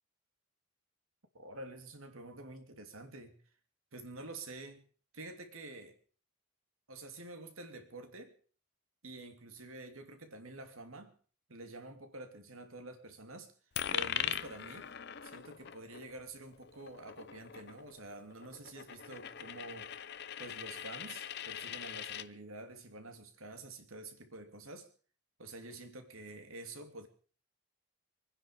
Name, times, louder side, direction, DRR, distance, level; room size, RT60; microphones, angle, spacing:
voice 1, 1.3-3.4 3.9-4.8 5.1-6.0 6.9-8.4 9.0-11.1 11.5-13.5 13.9-14.9 15.2-19.9 20.4-24.9 25.4-27.1, right 2 dB, 80° right, 6 dB, 2.8 m, -48 dB
Coin (dropping), 13.8-22.3, left 9 dB, 50° left, 0.6 m, -41 dB
25.0 x 9.9 x 5.3 m, 0.42 s
head